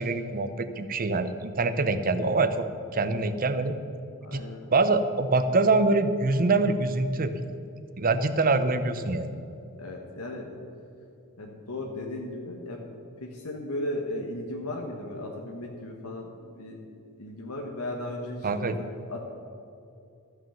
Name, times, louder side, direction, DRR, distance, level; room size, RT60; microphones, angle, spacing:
voice 1, 0.0-2.7 2.9-3.8 4.3-4.4 4.7-7.3 8.0-9.3 18.4-18.8, right 3 dB, 40° right, 10 dB, 0.7 m, -24 dB
voice 2, 4.2-4.7 9.8-10.5 11.4-12.9 13.2-16.8 17.2-19.2, left 1 dB, 85° left, 1 dB, 1.3 m, -36 dB
13.5 x 6.2 x 7.1 m, 2.6 s
head